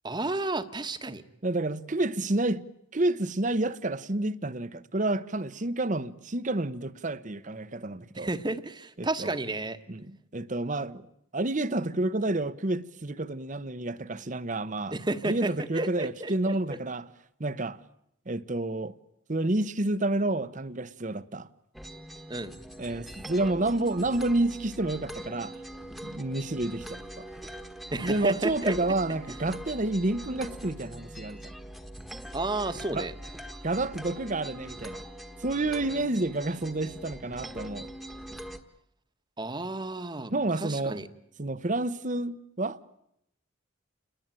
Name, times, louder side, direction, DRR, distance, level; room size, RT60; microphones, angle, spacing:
voice 1, 0.0-1.2 8.2-9.8 14.9-16.5 22.3-22.6 27.9-28.7 32.3-33.1 39.4-40.3 40.6-41.1, right 2 dB, 25° right, 1.2 m, -32 dB
voice 2, 1.4-2.6 2.9-8.3 9.0-9.4 9.9-11.1 11.3-14.9 15.2-17.0 17.4-17.8 18.3-18.9 19.3-21.5 22.8-25.6 26.0-27.3 28.0-31.5 32.9-33.1 33.6-35.0 35.4-37.9 40.3-41.1 41.4-42.8, right 2 dB, 40° right, 0.9 m, -29 dB
sound 1, 21.7-38.6, right 1 dB, ahead, 1.3 m, -42 dB
29.0 x 20.5 x 9.0 m
head